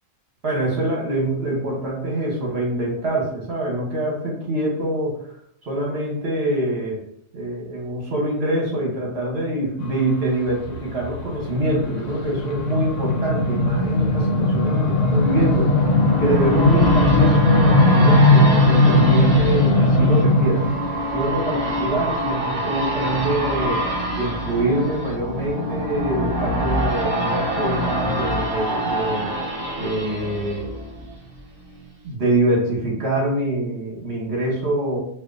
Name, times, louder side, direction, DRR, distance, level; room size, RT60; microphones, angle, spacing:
voice 1, 0.4-5.2 5.6-7.0 7.3-15.8 16.2-20.7 21.1-23.9 24.1-29.3 29.8-30.7 32.0-35.0, right 1 dB, 55° right, -2 dB, 1.2 m, -24 dB
sound 1, 10.5-20.9, left 2 dB, 80° left, 1.0 m, -18 dB
sound 2, 13.6-31.4 31.8-31.9, equal, 35° right, 0.6 m, -26 dB
4.3 x 2.5 x 2.5 m, 0.67 s
omnidirectional pair, 1.3 m